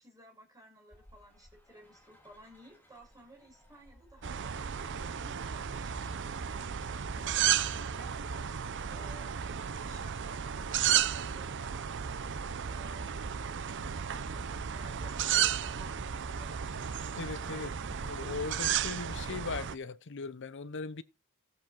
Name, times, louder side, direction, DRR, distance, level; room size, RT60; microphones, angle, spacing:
voice 1, 0.0-7.2 7.9-16.7, right 1 dB, 15° right, 6.5 m, -57 dB
sound 1, 0.9-19.6, equal, 10° left, 4.5 m, -52 dB
sound 2, 4.2-19.7, right 9 dB, 55° right, 0.6 m, -33 dB
voice 2, 17.2-21.0, left 4 dB, 55° left, 0.7 m, -39 dB
14.5 x 7.9 x 4.5 m
head